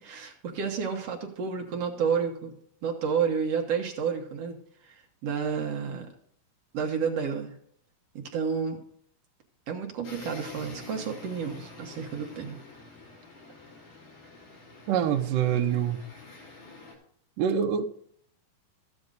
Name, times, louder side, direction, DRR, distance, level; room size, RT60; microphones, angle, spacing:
voice 1, 0.0-2.5 2.8-4.6 4.8-4.9 5.2-6.1 6.7-7.5 8.3-8.8 9.7-12.6, right 6 dB, 60° right, 3 dB, 1.8 m, -30 dB
sound 1, 10.0-17.0, left 3 dB, 70° left, 5.3 m, -47 dB
voice 2, 14.9-16.0 17.4-17.9, right 8 dB, 75° right, 4 dB, 2.3 m, -25 dB
14.0 x 8.8 x 3.9 m, 0.64 s
omnidirectional pair, 4.2 m